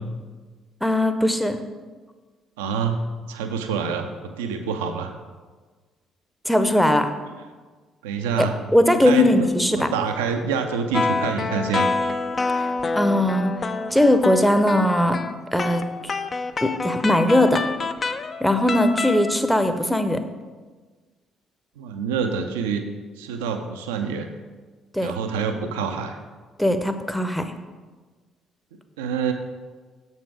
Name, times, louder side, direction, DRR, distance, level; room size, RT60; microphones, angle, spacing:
voice 1, 0.8-1.6 6.5-7.1 8.4-8.5 8.7-9.9 12.5-12.7 13.0-13.5 13.9-15.2 15.5-15.8 16.6-17.7 18.4-20.2 24.9-25.1 26.6-27.5, left 1 dB, ahead, 8 dB, 0.7 m, -19 dB
voice 2, 2.6-3.0 3.3-4.1 4.4-5.1 8.0-8.5 9.0-11.9 21.8-22.9 23.2-24.3 25.0-26.2 29.0-29.3, right 6 dB, 70° right, 6 dB, 0.5 m, -26 dB
sound 1, 10.9-19.4, left 3 dB, 35° left, 0.4 m, -27 dB
7.3 x 5.4 x 4.8 m, 1.4 s
figure-of-eight pair, 45°, 0 cm